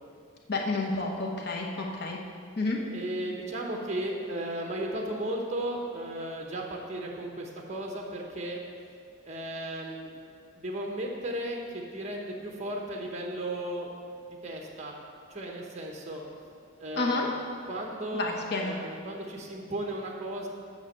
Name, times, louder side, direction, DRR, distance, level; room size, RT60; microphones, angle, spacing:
voice 1, 0.5-2.2 2.6-2.8 16.9-17.3 18.1-18.7, left 3 dB, 55° left, 0 dB, 1.0 m, -30 dB
voice 2, 2.9-8.6 9.2-10.1 10.6-13.9 14.4-14.9 15.3-16.2 16.8-17.3 17.6-20.5, right 1 dB, 35° right, 0 dB, 1.1 m, -35 dB
8.5 x 6.1 x 6.6 m, 2.2 s
head